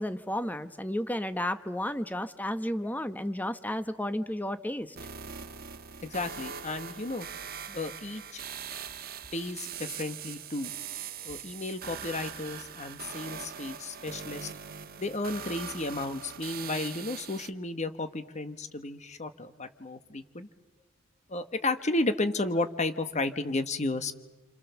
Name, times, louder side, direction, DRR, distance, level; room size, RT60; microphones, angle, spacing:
voice 1, 0.0-4.9 7.7-7.8, left 1 dB, 10° left, 11 dB, 0.9 m, -32 dB
sound 1, 5.0-17.5, right 7 dB, 45° right, 1.3 m, -41 dB
voice 2, 6.0-7.3 7.7-8.4 9.3-10.7 11.2-14.5 15.0-20.5 21.3-24.2, left 2 dB, 35° left, 10 dB, 1.3 m, -33 dB
29.5 x 25.5 x 7.0 m, 1.1 s
head